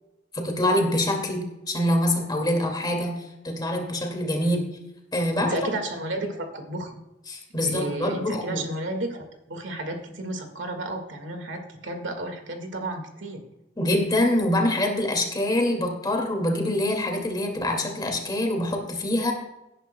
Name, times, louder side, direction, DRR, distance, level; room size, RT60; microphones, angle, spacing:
voice 1, 0.3-1.4 1.7-3.1 3.4-4.6 5.1-5.6 7.3-8.6 13.8-19.3, left 1 dB, 20° left, 2 dB, 2.2 m, -25 dB
voice 2, 5.5-6.9 7.7-9.2 9.5-13.4, right 1 dB, 70° right, 5 dB, 1.8 m, -32 dB
17.5 x 10.0 x 2.2 m, 0.94 s
head